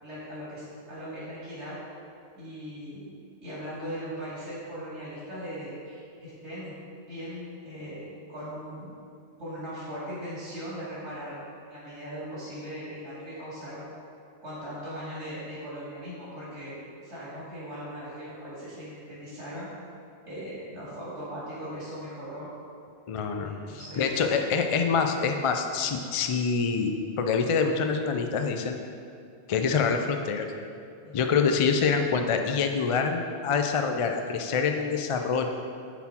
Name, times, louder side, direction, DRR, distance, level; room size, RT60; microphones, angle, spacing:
voice 1, 0.0-1.8 2.4-3.1 3.4-6.7 7.1-8.9 9.4-11.3 11.7-13.9 14.4-19.7 20.2-22.5 23.4-24.2 31.0-31.2, equal, 85° right, -10 dB, 2.3 m, -39 dB
voice 2, 23.1-28.8 29.5-30.5 31.1-35.5, left 5 dB, 50° left, 5 dB, 0.4 m, -26 dB
9.5 x 4.2 x 4.3 m, 2.5 s
omnidirectional pair, 1.1 m